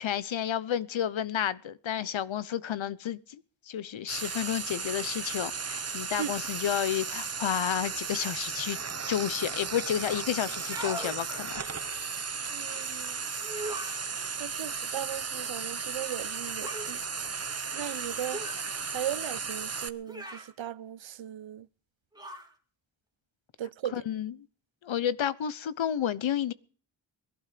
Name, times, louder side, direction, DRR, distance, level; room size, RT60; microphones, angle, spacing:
voice 1, 0.0-3.4 3.7-8.8 9.1-11.6 23.9-24.3 24.8-26.5, left 10 dB, 80° left, 1.0 m, -31 dB
Frying (food), 4.1-19.9, right 5 dB, 35° right, 1.0 m, -35 dB
sound 1, 10.5-11.2 13.4-14.1 16.6-16.9 18.3-18.7 20.1-20.5 22.2-22.5, right 1 dB, 10° right, 2.6 m, -39 dB
voice 2, 12.5-13.2 14.4-17.0 17.7-18.4 18.9-21.7 23.6-24.0, right 11 dB, 80° right, 0.8 m, -37 dB
21.5 x 12.0 x 5.2 m
wide cardioid pair, 115°, 46 cm